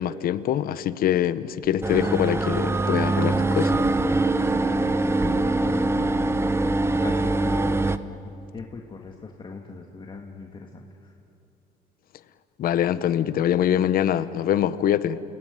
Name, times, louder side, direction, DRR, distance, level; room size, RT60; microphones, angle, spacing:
voice 1, 0.0-3.8 12.6-15.2, left 10 dB, 60° left, 0.9 m, -24 dB
sound 1, 1.8-8.0, right 2 dB, 15° right, 0.9 m, -23 dB
voice 2, 4.6-7.8 8.2-11.1, left 4 dB, 30° left, 1.8 m, -41 dB
29.5 x 18.5 x 9.4 m
cardioid pair, 110°, 17 cm